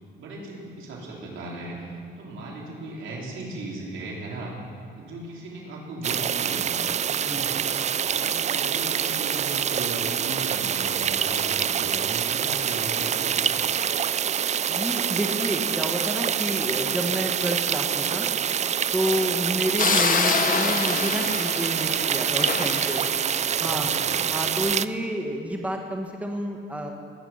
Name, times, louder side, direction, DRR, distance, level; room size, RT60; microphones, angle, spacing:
voice 1, 0.2-6.8 7.2-7.6 8.0-13.8 19.7-20.0 23.4-24.3, right 2 dB, 75° right, -3 dB, 3.8 m, -37 dB
sound 1, 6.0-24.9, right 8 dB, 35° right, 0.4 m, -26 dB
voice 2, 7.1-7.6 14.7-18.3 18.9-23.0 23.6-23.9 24.3-26.9, right 1 dB, 5° right, 2 dB, 1.7 m, -29 dB
sound 2, 19.8-24.3, left 6 dB, 45° left, 0.9 m, -27 dB
20.5 x 9.5 x 5.9 m, 2.4 s
cardioid pair, 90°, 20 cm